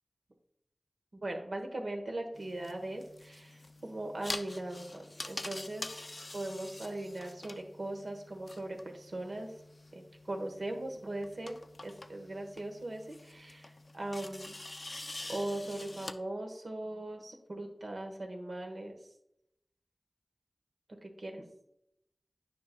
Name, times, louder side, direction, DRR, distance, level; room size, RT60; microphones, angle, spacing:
voice 1, 1.1-6.0 6.3-9.5 9.9-11.6 11.8-14.5 15.3-19.0 21.0-21.4, right 1 dB, 70° right, 3 dB, 1.1 m, -39 dB
sound 1, 2.3-16.1, left 2 dB, 45° left, 0.4 m, -46 dB
9.5 x 5.5 x 2.2 m, 0.79 s
wide cardioid pair, 60°, 0 cm